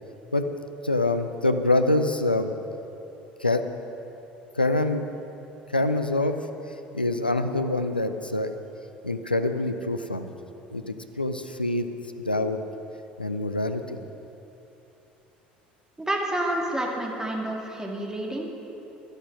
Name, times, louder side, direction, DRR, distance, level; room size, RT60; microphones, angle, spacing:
voice 1, 0.8-2.5 3.4-3.6 4.5-5.1 5.7-6.4 6.9-8.5 9.0-10.3 10.7-11.9 12.2-12.6 13.2-14.0, left 2 dB, 90° left, 8 dB, 0.6 m, -25 dB
voice 2, 16.0-18.5, right 1 dB, 10° right, 0 dB, 2.3 m, -29 dB
12.5 x 11.5 x 6.2 m, 3.0 s
figure-of-eight pair, 60°, 5 cm